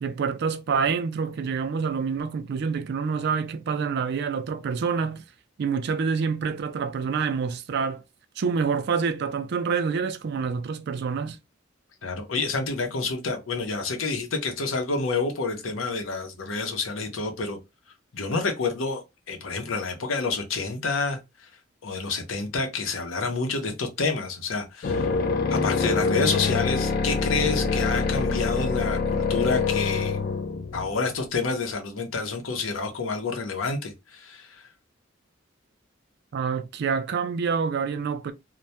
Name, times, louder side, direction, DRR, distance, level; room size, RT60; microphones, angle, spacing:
voice 1, 0.0-5.3 5.6-8.0 8.4-11.4 36.3-38.3, right 5 dB, 55° right, 0.3 m, -27 dB
voice 2, 12.0-17.6 18.1-19.0 19.3-21.5 21.8-25.1 25.5-30.2 30.7-34.6, left 4 dB, 85° left, 0.7 m, -28 dB
sound 1, 24.8-31.1, left 4 dB, 50° left, 0.4 m, -25 dB
2.2 x 2.1 x 2.7 m
head